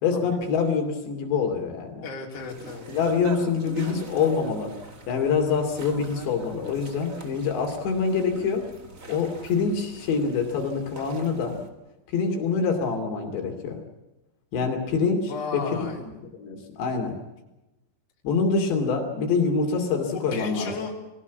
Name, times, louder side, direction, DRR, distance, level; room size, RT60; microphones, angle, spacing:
voice 1, 0.0-2.0 2.9-4.7 5.1-8.7 9.1-11.6 12.1-13.8 14.5-16.1 16.4-17.2 18.2-20.7, left 5 dB, 70° left, 3 dB, 4.7 m, -25 dB
voice 2, 2.0-2.9 15.3-16.0 20.1-20.9, left 4 dB, 35° left, 0 dB, 4.2 m, -34 dB
sound 1, 2.3-11.7, right 3 dB, 50° right, 0.9 m, -42 dB
22.0 x 18.0 x 8.3 m, 1.0 s
omnidirectional pair, 5.3 m